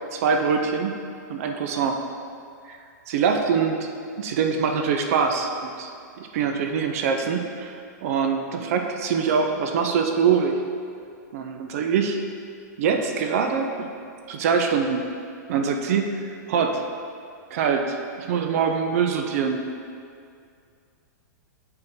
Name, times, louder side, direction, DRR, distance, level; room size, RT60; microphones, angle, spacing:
voice 1, 0.1-0.9 1.3-2.0 2.7-2.8 3.1-3.9 4.2-5.9 6.2-7.7 8.0-10.6 11.3-12.2 12.8-13.9 14.3-15.0 15.5-16.1 16.5-16.8 17.5-19.7, right 6 dB, 50° right, 4 dB, 0.6 m, -24 dB
7.7 x 3.7 x 4.6 m, 2.3 s
hypercardioid pair, 155°, 10 cm